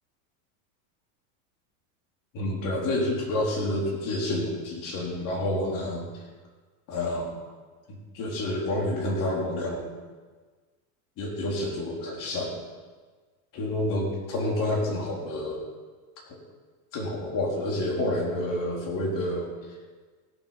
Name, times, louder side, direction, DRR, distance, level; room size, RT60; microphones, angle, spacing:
voice 1, 2.3-6.1 6.9-7.4 8.1-9.8 11.2-12.6 13.5-15.6 16.3-16.4 16.9-19.5, left 1 dB, 45° left, -2 dB, 3.8 m, -29 dB
16.5 x 7.3 x 5.9 m, 1.4 s
supercardioid pair, 130°, 44 cm